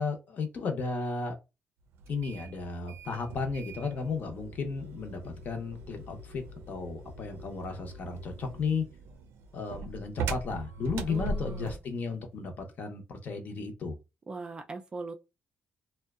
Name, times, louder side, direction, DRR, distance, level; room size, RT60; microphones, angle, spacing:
voice 1, 0.0-1.4 2.1-8.8 9.5-14.0, left 4 dB, 45° left, 0.7 m, -34 dB
sound 1, 2.0-11.9, right 3 dB, 85° right, 0.4 m, -40 dB
voice 2, 11.1-11.8 14.3-15.1, right 3 dB, 20° right, 0.3 m, -40 dB
2.6 x 2.1 x 2.3 m
cardioid pair, 155°, 4 cm